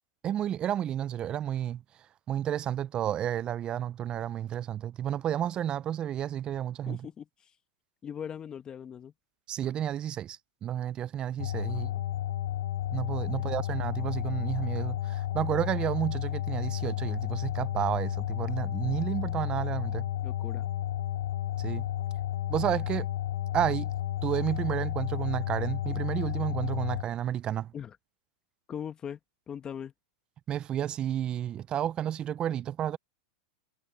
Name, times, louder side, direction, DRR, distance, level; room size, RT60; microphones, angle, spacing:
voice 1, 0.2-1.8 2.3-7.0 9.5-11.9 12.9-20.0 21.6-21.9 22.5-23.1 23.5-23.9 24.2-27.7 30.5-33.0, right 10 dB, 25° right, 0.4 m, -31 dB
voice 2, 6.9-7.5 8.0-9.1 11.7-12.0 13.3-13.5 20.2-20.7 27.7-28.0 28.7-29.2 29.5-29.9, left 8 dB, 25° left, 1.5 m, -40 dB
sound 1, 11.4-27.0, left 12 dB, 70° left, 0.4 m, -32 dB
hypercardioid pair, 125°, 3 cm